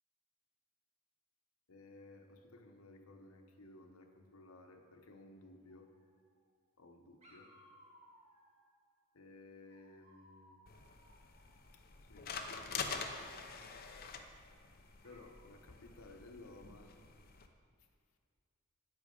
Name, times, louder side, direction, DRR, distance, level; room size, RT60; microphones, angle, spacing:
voice 1, 1.7-5.9 6.8-7.5 9.1-10.5 12.1-13.1 15.0-17.0, left 2 dB, 85° left, 3 dB, 1.0 m, -57 dB
Dog, 5.7-6.5 7.2-8.9 9.7-11.8 12.7-14.6 15.0-15.4, equal, 30° right, 2.0 m, -65 dB
sound 1, 10.7-17.5, left 5 dB, 45° left, 0.7 m, -46 dB
9.5 x 8.1 x 5.3 m, 2.2 s
head